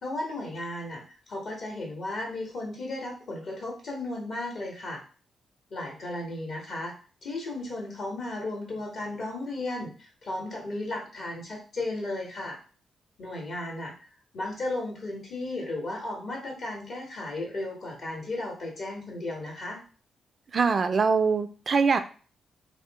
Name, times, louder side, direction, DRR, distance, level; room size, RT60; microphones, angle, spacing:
voice 1, 0.0-5.0 5.7-6.9 7.2-12.6 13.2-13.9 14.3-19.8, left 2 dB, 65° left, -1 dB, 1.5 m, -35 dB
voice 2, 20.5-22.0, right 5 dB, 50° right, 9 dB, 0.4 m, -23 dB
2.8 x 2.0 x 3.6 m, 0.38 s
supercardioid pair, 50°, 0 cm